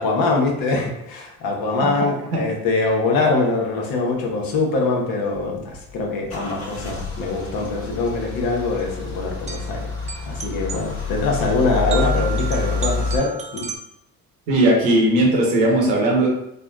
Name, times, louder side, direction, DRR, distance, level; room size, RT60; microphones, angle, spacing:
voice 1, 0.0-9.9 10.2-13.7, left 3 dB, 55° left, 0 dB, 0.9 m, -23 dB
Car / Engine starting / Idling, 5.4-13.2, left 4 dB, 40° left, 1.2 m, -28 dB
sound 1, 7.4-13.8, right 6 dB, 20° right, 0.4 m, -34 dB
voice 2, 14.5-16.3, right 1 dB, 85° right, -1 dB, 1.0 m, -17 dB
3.4 x 2.2 x 2.3 m, 0.80 s
supercardioid pair, 80°, 42 cm